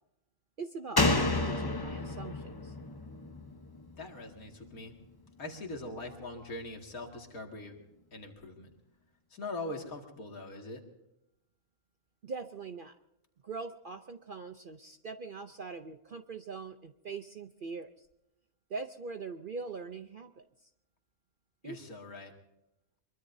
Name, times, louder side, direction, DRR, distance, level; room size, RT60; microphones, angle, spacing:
voice 1, 0.6-2.8 12.2-13.0 13.4-18.1 18.7-20.7 21.6-21.8, right 4 dB, 50° right, 8 dB, 0.7 m, -42 dB
Slam, 1.0-4.4 4.7-4.8, left 2 dB, 20° left, 0.8 m, -31 dB
voice 2, 4.0-4.9 5.4-7.8 8.1-8.7 9.3-10.8 21.6-22.3, left 2 dB, 75° left, 2 dB, 2.6 m, -42 dB
23.5 x 23.0 x 2.7 m, 0.87 s
omnidirectional pair, 1.5 m